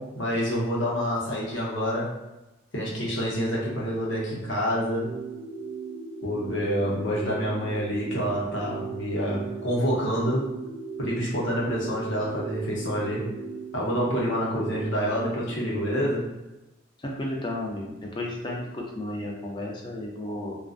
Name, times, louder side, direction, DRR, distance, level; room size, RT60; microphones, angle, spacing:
voice 1, 0.0-2.1 2.7-5.1 6.2-10.5 11.0-13.2 13.7-16.2, equal, 70° left, -4 dB, 0.8 m, -27 dB
sound 1, 5.0-15.3, right 4 dB, 80° right, 0.4 m, -38 dB
voice 2, 17.0-20.6, left 1 dB, 25° left, -1 dB, 0.4 m, -33 dB
2.4 x 2.2 x 2.5 m, 0.99 s
head